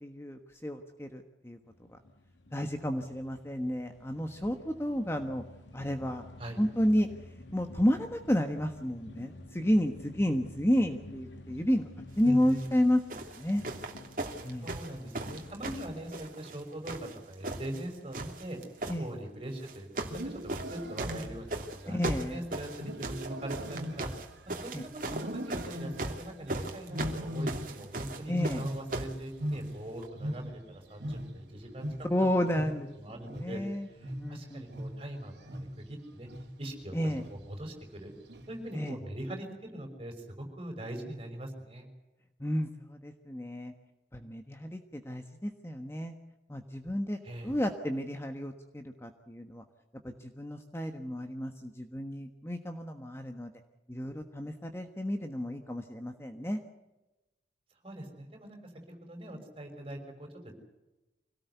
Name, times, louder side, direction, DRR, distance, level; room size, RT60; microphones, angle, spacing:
voice 1, 0.0-2.0 2.5-5.4 5.7-6.2 6.6-7.1 7.5-11.9 12.2-13.6 14.4-14.7 18.9-19.1 21.9-22.4 24.7-24.8 28.3-28.6 32.1-33.9 34.2-34.6 36.9-37.2 38.7-39.0 42.4-43.7 44.1-46.1 46.5-49.6 50.0-53.5 53.9-56.6, equal, 15° left, 5 dB, 1.3 m, -31 dB
sound 1, 1.6-16.2, left 2 dB, 85° left, 2.7 m, -50 dB
voice 2, 12.2-12.6 14.6-18.6 19.0-20.3 20.7-24.1 24.5-31.9 33.0-33.6 34.0-36.3 36.6-38.1 38.5-41.9 47.2-47.5 57.8-58.6 59.0-60.5, right 1 dB, 30° right, 3 dB, 5.9 m, -41 dB
sound 2, 12.5-12.7 13.1-16.6 16.8-17.8 18.1-19.0 19.6-20.2 20.5-29.2 30.0-30.1, right 2 dB, 50° right, 2.9 m, -38 dB
Wild animals, 20.0-21.7 22.8-24.6 25.1-26.3 26.9-27.9 28.2-30.7 31.0-35.9 36.3-36.7 37.1-37.6 38.3-38.7, equal, 70° right, 3.2 m, -39 dB
25.5 x 18.0 x 8.2 m, 1.0 s
head